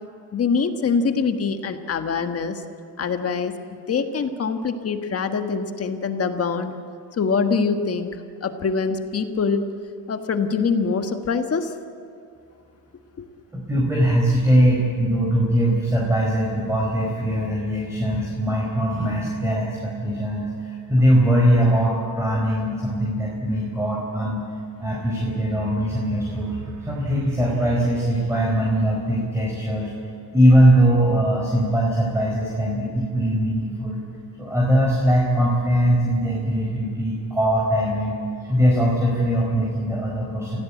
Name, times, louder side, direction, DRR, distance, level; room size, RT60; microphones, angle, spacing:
voice 1, 0.3-2.6 3.0-3.5 3.9-6.7 7.1-9.6 10.1-11.7 13.2-13.3, left 5 dB, 35° left, 6 dB, 1.7 m, -24 dB
voice 2, 13.5-24.5 24.8-26.6 26.9-29.9 30.3-34.0 34.4-40.6, equal, 5° right, -3 dB, 4.7 m, -21 dB
sound 1, 24.8-29.8, right 4 dB, 50° right, 3.4 m, -41 dB
28.0 x 16.0 x 8.6 m, 2.4 s
cardioid pair, 130°, 39 cm